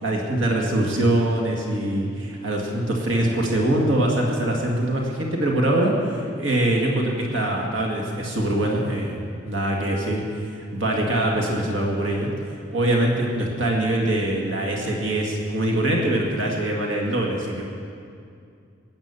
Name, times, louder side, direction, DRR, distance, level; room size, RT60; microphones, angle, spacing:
voice 1, 0.0-10.2 10.5-12.3 12.7-17.6, right 1 dB, 90° right, -1 dB, 2.1 m, -23 dB
18.0 x 8.8 x 7.0 m, 2.4 s
head